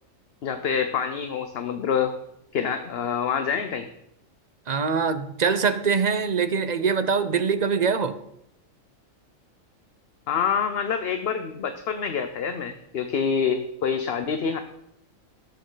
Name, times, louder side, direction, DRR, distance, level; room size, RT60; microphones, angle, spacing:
voice 1, 0.4-2.1 2.5-3.9 10.3-14.6, left 6 dB, 55° left, 7 dB, 0.9 m, -26 dB
voice 2, 4.7-8.1, right 5 dB, 40° right, 10 dB, 0.7 m, -23 dB
18.5 x 7.6 x 3.9 m, 0.78 s
omnidirectional pair, 1.4 m